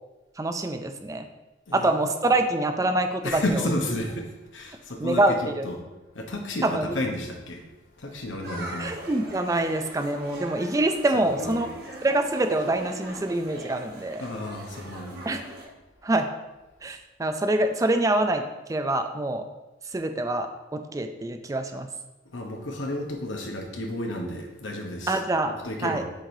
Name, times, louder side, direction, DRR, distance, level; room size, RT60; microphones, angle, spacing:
voice 1, 0.4-1.3 1.7-3.4 5.0-5.7 6.6-6.9 8.8-11.7 12.0-14.2 15.3-15.4 16.0-16.3 16.8-18.4 18.7-19.4 19.9-21.9 25.1-25.5 25.8-26.0, right 2 dB, 15° right, 7 dB, 0.3 m, -25 dB
voice 2, 3.2-5.8 6.1-7.6 8.0-9.0 11.1-11.7 14.2-15.2 22.3-26.0, left 1 dB, 85° left, 2 dB, 1.0 m, -32 dB
sound 1, 8.4-15.7, right 1 dB, 55° right, 1.2 m, -41 dB
7.5 x 4.7 x 2.7 m, 1.1 s
head